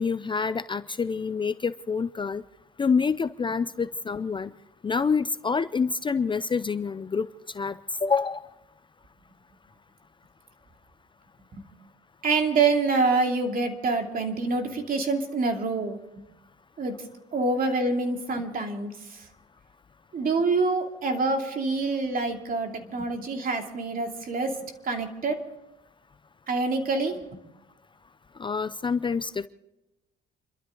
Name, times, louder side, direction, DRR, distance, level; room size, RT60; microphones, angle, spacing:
voice 1, 0.0-2.4 2.8-4.5 4.8-7.3 7.5-8.4 28.4-29.5, left 5 dB, 25° left, 13 dB, 0.5 m, -27 dB
voice 2, 12.2-16.0 16.8-16.9 17.3-19.2 20.1-24.5 24.8-25.4 26.5-27.2, right 3 dB, 45° right, 3 dB, 2.7 m, -26 dB
29.5 x 12.5 x 3.8 m, 0.95 s
cardioid pair, 100°, 21 cm